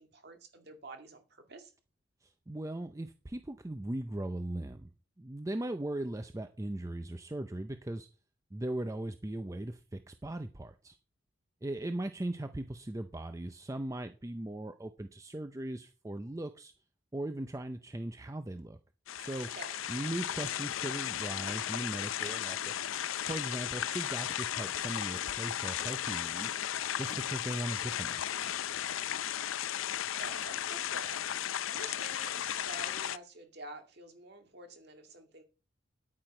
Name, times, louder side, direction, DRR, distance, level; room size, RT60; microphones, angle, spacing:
voice 1, 0.0-1.7 19.5-19.8 30.0-31.2 31.4-35.4, right 2 dB, 50° right, 2.1 m, -49 dB
voice 2, 2.2-4.9 5.2-8.1 8.5-11.0 11.6-16.7 17.1-18.8 19.2-19.5 19.9-22.9 23.2-26.5 26.9-28.2, right 1 dB, 15° right, 0.4 m, -38 dB
sound 1, 19.1-33.2, left 11 dB, 75° left, 0.5 m, -35 dB
Walk footsteps, 21.3-21.4 21.7-22.6 23.2-23.7 24.1-24.4 25.1-25.5 25.8-25.9 26.4-27.2 27.7-28.1 28.4-28.6 29.1-29.2, left 4 dB, 35° left, 1.2 m, -51 dB
9.6 x 8.9 x 4.4 m
head